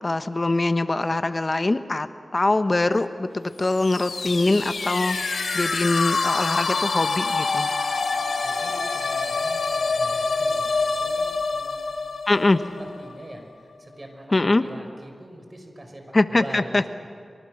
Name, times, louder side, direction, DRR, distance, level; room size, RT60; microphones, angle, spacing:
voice 1, 0.0-2.1 2.3-7.7 12.3-12.6 14.3-14.6 16.1-16.8, left 2 dB, 40° left, 10 dB, 1.2 m, -23 dB
sound 1, 3.7-13.4, left 4 dB, 80° left, 1.5 m, -26 dB
voice 2, 8.4-11.9 12.8-16.9, right 1 dB, 35° right, 4 dB, 5.6 m, -43 dB
26.0 x 24.5 x 6.6 m, 2.2 s
cardioid pair, 45°, 0 cm